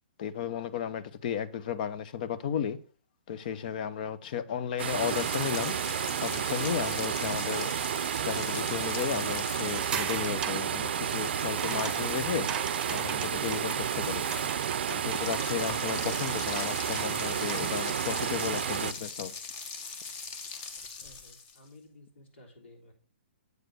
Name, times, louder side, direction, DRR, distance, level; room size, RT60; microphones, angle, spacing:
voice 1, 0.2-2.8 3.3-5.7 6.2-7.7 8.2-12.5 12.9-14.2 14.9-19.3, left 8 dB, 45° left, 0.7 m, -34 dB
sound 1, 4.8-21.7, left 5 dB, 30° left, 1.1 m, -42 dB
sound 2, 4.8-18.9, right 9 dB, 65° right, 0.5 m, -31 dB
sound 3, 9.6-17.8, right 7 dB, 15° right, 0.9 m, -40 dB
voice 2, 21.0-22.9, left 2 dB, 80° left, 3.5 m, -54 dB
8.0 x 4.8 x 6.3 m
hypercardioid pair, 155°, 6 cm